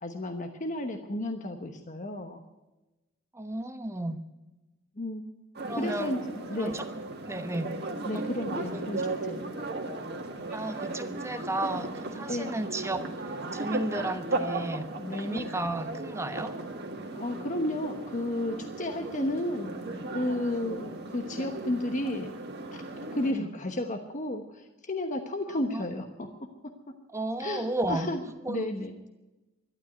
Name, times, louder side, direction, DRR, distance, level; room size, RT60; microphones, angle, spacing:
voice 1, 0.0-2.4 5.0-5.2 5.8-6.8 8.0-9.4 12.3-12.6 15.0-15.5 17.1-19.7 20.1-22.3 22.7-22.8 23.1-26.3 27.4-28.2 28.5-29.0, left 1 dB, 40° left, 5 dB, 1.1 m, -32 dB
voice 2, 3.3-4.2 5.6-6.2 6.6-6.9 7.3-7.7 8.1-8.2 8.7-8.8 10.5-13.1 13.5-16.5 23.3-23.5 25.6-25.9 27.1-28.1 28.4-28.7, right 1 dB, 15° right, 9 dB, 1.0 m, -33 dB
Ambience Amsterdam Square, 5.5-23.3, right 2 dB, 55° right, 2.0 m, -36 dB
12.5 x 12.0 x 9.4 m, 1.1 s
head